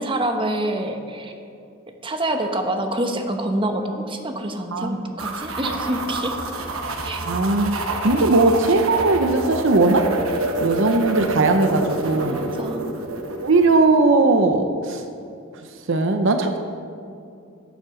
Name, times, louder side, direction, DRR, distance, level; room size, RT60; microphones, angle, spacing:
voice 1, 0.0-1.3 2.0-6.4 7.0-7.3 12.3-12.9, right 1 dB, 25° right, 4 dB, 1.0 m, -26 dB
voice 2, 4.7-5.0 7.2-10.0 10.6-12.4 13.4-15.0 15.9-16.6, right 3 dB, 65° right, 7 dB, 0.7 m, -19 dB
sound 1, 5.2-13.8, right 2 dB, 85° right, 1.1 m, -28 dB
14.0 x 7.5 x 6.3 m, 2.5 s
head